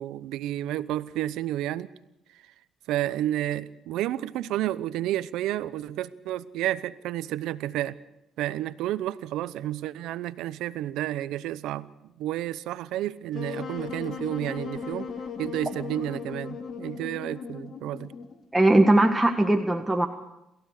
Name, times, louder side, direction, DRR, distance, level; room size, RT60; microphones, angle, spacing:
voice 1, 0.0-1.9 2.3-2.5 2.9-8.0 8.4-15.1 15.4-18.1, right 13 dB, 80° right, 16 dB, 0.8 m, -31 dB
Wind instrument woodwind instrument, 13.3-18.4, left 6 dB, 50° left, 3.5 m, -37 dB
voice 2, 18.5-20.1, right 1 dB, 10° right, 3 dB, 1.7 m, -20 dB
27.0 x 15.5 x 6.6 m, 0.88 s
supercardioid pair, 70°, 0 cm